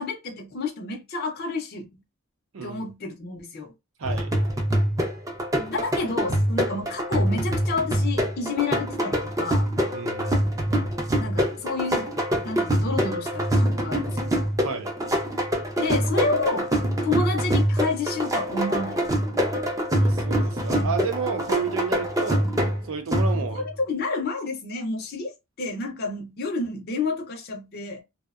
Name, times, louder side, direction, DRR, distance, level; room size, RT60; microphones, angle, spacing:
voice 1, 0.0-2.0 2.6-3.7 5.6-9.7 11.2-12.1 12.4-14.3 15.8-16.7 17.0-19.0 23.5-25.3 25.6-28.0, left 3 dB, 50° left, 0.5 m, -29 dB
voice 2, 2.5-2.9 4.0-4.4 9.9-10.4 14.6-14.9 20.0-22.5 22.8-23.6, right 5 dB, 80° right, 0.6 m, -31 dB
sound 1, 4.0-23.7, equal, 15° right, 0.4 m, -25 dB
2.6 x 2.1 x 2.3 m
head